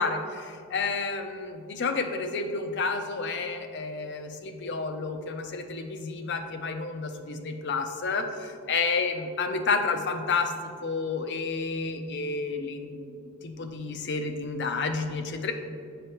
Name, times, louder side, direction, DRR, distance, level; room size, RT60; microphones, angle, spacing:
voice 1, 0.0-13.2 13.4-15.5, left 4 dB, 50° left, 6 dB, 0.5 m, -30 dB
8.4 x 4.9 x 3.0 m, 2.3 s
head